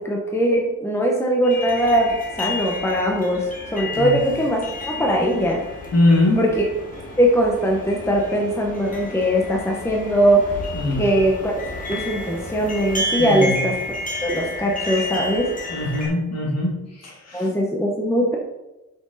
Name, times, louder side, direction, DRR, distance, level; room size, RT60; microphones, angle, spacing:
voice 1, 0.0-5.6 6.4-6.6 7.2-10.6 11.0-11.5 11.9-13.7 14.2-15.5 17.3-18.4, equal, 10° left, -1 dB, 1.0 m, -20 dB
sound 1, 1.4-16.1, left 1 dB, 25° left, 1.9 m, -31 dB
voice 2, 5.9-6.4 10.7-11.1 13.2-13.6 15.7-17.5, left 2 dB, 55° left, -2 dB, 2.6 m, -21 dB
7.9 x 6.3 x 4.1 m, 1.0 s
wide cardioid pair, 150°, 31 cm